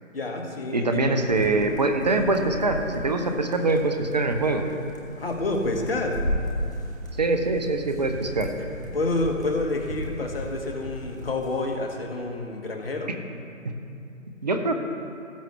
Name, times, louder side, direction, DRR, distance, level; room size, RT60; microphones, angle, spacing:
voice 1, 0.1-1.2 5.2-6.3 8.7-13.1, left 2 dB, 45° left, 2 dB, 1.4 m, -29 dB
voice 2, 0.7-4.7 7.2-8.5 13.1-13.2 13.6-13.8 14.4-14.7, right 2 dB, 30° right, 5 dB, 0.7 m, -24 dB
sound 1, 1.2-11.7, equal, 15° left, 0.6 m, -35 dB
18.0 x 7.4 x 3.2 m, 2.7 s
figure-of-eight pair, 155°, 40 cm